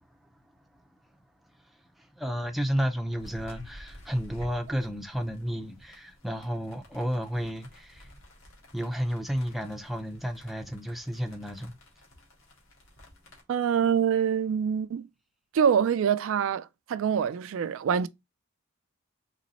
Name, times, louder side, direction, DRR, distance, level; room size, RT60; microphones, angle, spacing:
voice 1, 0.0-8.2 8.7-11.8, equal, ahead, 0.5 m, -33 dB
sound 1, 3.2-13.4, equal, 65° left, 1.9 m, -51 dB
voice 2, 13.5-15.1 15.5-18.1, right 7 dB, 70° right, 0.3 m, -25 dB
4.1 x 3.1 x 4.0 m
head